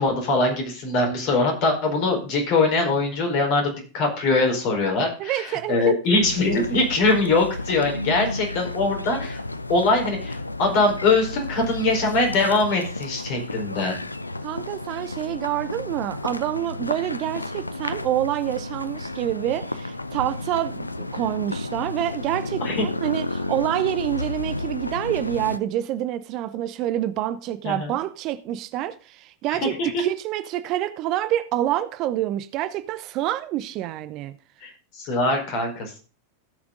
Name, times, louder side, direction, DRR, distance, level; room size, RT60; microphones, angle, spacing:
voice 1, 0.0-9.4 9.7-14.0 22.6-22.9 27.6-27.9 29.5-30.0 34.6-36.0, left 3 dB, 45° left, 4.5 m, -22 dB
voice 2, 5.2-5.9 14.4-34.3, right 13 dB, 40° right, 0.7 m, -27 dB
sound 1, 6.2-25.6, left 2 dB, 85° left, 0.5 m, -32 dB
16.0 x 6.1 x 3.8 m
figure-of-eight pair, 90°, 0 cm